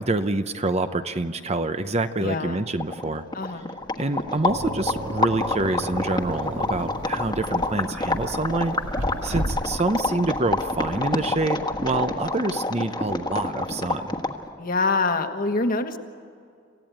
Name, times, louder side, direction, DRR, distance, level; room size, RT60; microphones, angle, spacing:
voice 1, 0.0-3.2 4.0-8.7 9.2-14.1, right 2 dB, 35° right, 9 dB, 0.8 m, -26 dB
voice 2, 2.2-2.6 3.3-3.7 14.6-16.0, left 3 dB, 45° left, 6 dB, 1.4 m, -25 dB
sound 1, 2.5-2.6 2.7-14.5, left 2 dB, 20° left, 1.4 m, -28 dB
sound 2, 3.6-14.5, equal, 5° right, 1.1 m, -44 dB
sound 3, 4.5-10.0, equal, 70° right, 2.5 m, -34 dB
27.5 x 16.0 x 9.2 m, 2.4 s
head